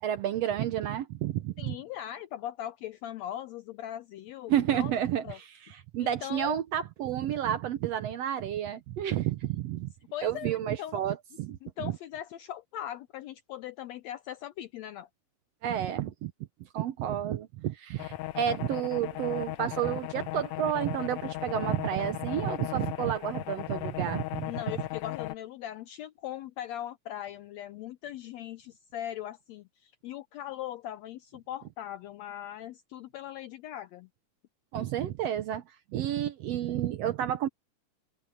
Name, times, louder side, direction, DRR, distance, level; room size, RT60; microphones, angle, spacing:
voice 1, 0.0-1.8 4.5-9.9 10.2-11.9 15.6-16.3 16.6-24.5 34.7-37.5, right 11 dB, 70° right, 1.6 m, -31 dB
voice 2, 1.6-4.9 5.2-5.4 6.0-6.6 10.1-11.0 11.6-15.1 24.5-34.1, left 12 dB, 90° left, 1.5 m, -40 dB
sound 1, 18.0-25.4, left 17 dB, 75° left, 2.0 m, -36 dB
omnidirectional pair, 3.7 m